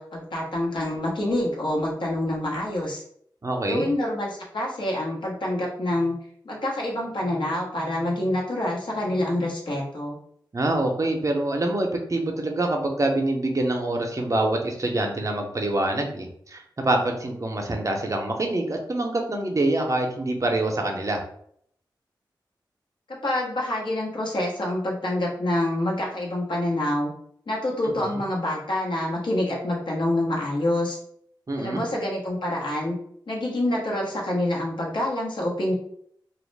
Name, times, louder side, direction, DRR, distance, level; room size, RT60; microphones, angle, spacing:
voice 1, 0.0-3.0 3.6-6.1 6.4-10.2 23.1-27.1 27.5-31.0 31.6-33.0 33.3-35.7, left 1 dB, 75° left, -3 dB, 0.9 m, -27 dB
voice 2, 3.4-3.9 10.5-21.2 27.9-28.2 31.5-31.8, right 2 dB, 40° right, 2 dB, 0.6 m, -25 dB
2.2 x 2.0 x 3.2 m, 0.65 s
cardioid pair, 50°, 8 cm